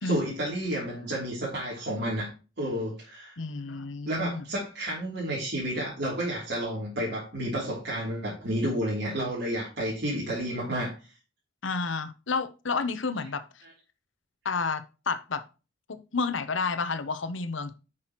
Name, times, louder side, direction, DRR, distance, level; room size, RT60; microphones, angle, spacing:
voice 1, 0.0-2.3 2.6-3.3 4.1-10.9, right 1 dB, 60° right, 3.1 m, -31 dB
voice 2, 3.4-4.4 11.6-13.5 14.4-15.4 15.9-17.7, left 4 dB, 75° left, 0.9 m, -30 dB
10.0 x 6.2 x 3.0 m
head